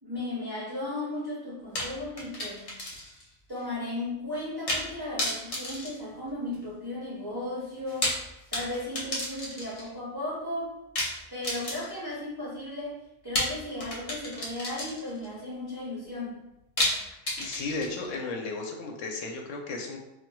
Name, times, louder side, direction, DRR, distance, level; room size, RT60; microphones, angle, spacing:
voice 1, 0.0-2.7 3.5-8.1 8.5-10.7 11.3-13.0 13.2-16.4, left 1 dB, 25° right, -8 dB, 0.6 m, -35 dB
sound 1, 1.7-3.3 3.6-3.7 4.7-4.9 5.2-6.7 7.8-9.9 10.9-12.1 13.3-15.3 16.8-18.2, left 1 dB, 40° left, 0.6 m, -32 dB
voice 2, 17.4-20.0, left 3 dB, 90° left, 2 dB, 1.0 m, -34 dB
4.3 x 2.3 x 2.2 m, 0.94 s
omnidirectional pair, 1.2 m